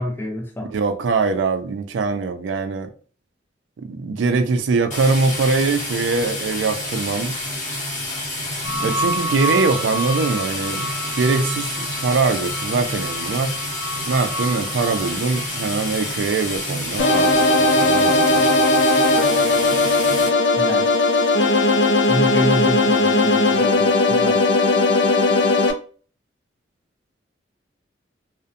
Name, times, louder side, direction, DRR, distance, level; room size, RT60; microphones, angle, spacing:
voice 1, 0.0-0.7 20.6-20.9 22.1-23.8 24.1-24.4, equal, 10° left, 0.5 m, -26 dB
voice 2, 0.7-2.9 3.8-7.4 8.8-10.9 11.1-13.5 14.1-18.5, right 4 dB, 80° right, 0.3 m, -22 dB
sound 1, 4.9-20.3, left 1 dB, 40° left, 0.7 m, -29 dB
sound 2, 8.6-18.0 18.4-18.5, equal, 30° right, 1.1 m, -31 dB
sound 3, 17.0-25.7, left 2 dB, 75° left, 0.4 m, -17 dB
2.5 x 2.1 x 2.5 m
head